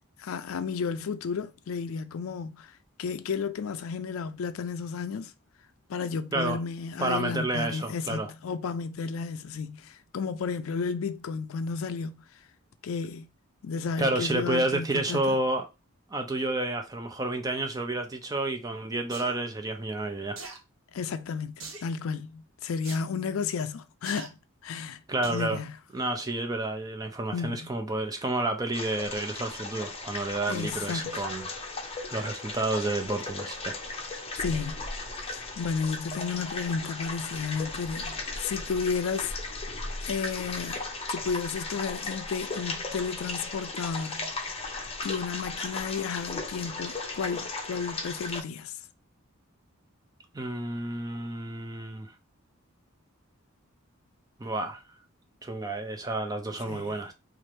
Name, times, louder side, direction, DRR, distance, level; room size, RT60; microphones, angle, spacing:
voice 1, 0.2-5.3 5.9-12.2 12.8-13.3 13.6-15.4 20.9-24.4 24.6-25.0 25.3-25.8 27.3-27.7 30.5-31.3 34.4-34.8 35.2-39.7 40.0-44.5 45.0-48.7 56.7-57.0, left 5 dB, 75° left, 0.4 m, -33 dB
voice 2, 7.0-8.3 14.0-15.7 16.1-20.4 25.1-25.6 25.9-31.5 31.9-33.8 50.3-52.1 54.4-54.8 55.4-57.1, right 2 dB, 15° right, 0.5 m, -30 dB
sound 1, 19.1-19.3 20.4-20.6 21.6-21.9 22.8-23.0 24.0-24.3 25.2-25.5 26.0-26.1, right 3 dB, 70° right, 0.9 m, -41 dB
sound 2, 28.7-48.4, left 3 dB, 30° left, 0.6 m, -36 dB
3.2 x 2.5 x 4.1 m
head